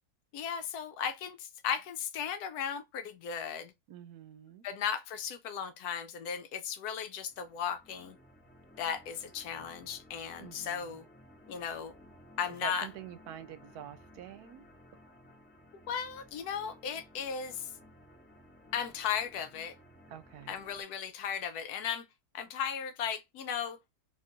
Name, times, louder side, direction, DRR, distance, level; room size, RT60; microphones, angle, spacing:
voice 1, 0.3-3.7 4.6-8.2 8.8-11.0 11.5-11.9 12.4-12.9 15.9-17.7 18.7-19.7 20.5-22.1 22.3-23.8, left 7 dB, 80° left, 1.1 m, -36 dB
voice 2, 3.9-4.7 10.4-11.0 12.6-14.6 20.1-20.6, right 10 dB, 80° right, 1.1 m, -46 dB
sound 1, 7.1-20.8, left 1 dB, 10° left, 0.6 m, -57 dB
3.0 x 2.4 x 4.3 m
omnidirectional pair, 1.7 m